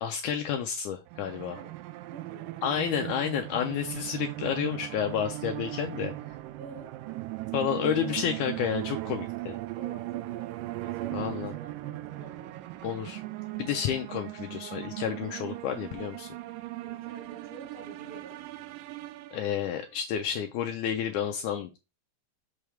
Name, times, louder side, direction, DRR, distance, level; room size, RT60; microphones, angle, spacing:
voice 1, 0.0-1.6 2.6-6.1 7.5-9.6 11.1-11.5 12.8-13.2 13.6-16.3 19.3-21.8, left 8 dB, 80° left, 4 dB, 1.9 m, -30 dB
sound 1, 1.1-19.8, right 17 dB, 85° right, 2.2 m, -38 dB
voice 2, 2.1-2.6 6.6-6.9 9.7-12.5 16.8-18.4, right 5 dB, 45° right, -1 dB, 2.5 m, -47 dB
6.2 x 5.6 x 3.4 m, 0.27 s
omnidirectional pair, 3.9 m